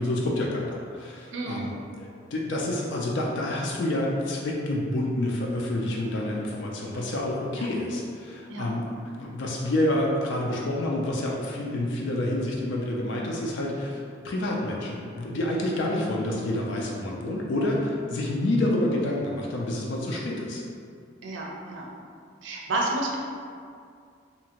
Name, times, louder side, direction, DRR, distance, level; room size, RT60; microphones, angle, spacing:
voice 1, 0.0-1.7 2.0-20.6, left 1 dB, 65° left, -2 dB, 0.4 m, -28 dB
voice 2, 1.3-1.7 7.5-7.7 8.5-8.7 15.7-15.9 21.2-21.9 22.4-23.2, right 2 dB, 70° right, -2 dB, 0.5 m, -31 dB
2.8 x 2.5 x 2.8 m, 2.3 s
head